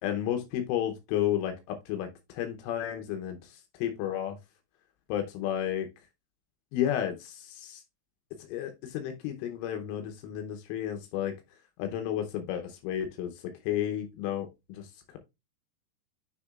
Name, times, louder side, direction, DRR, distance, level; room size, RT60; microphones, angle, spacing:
voice 1, 0.0-4.4 5.1-5.9 6.7-7.8 8.5-11.3 11.8-13.3 13.6-15.2, left 10 dB, 80° left, 5 dB, 3.4 m, -32 dB
7.2 x 6.8 x 2.4 m, 0.23 s
omnidirectional pair, 5.7 m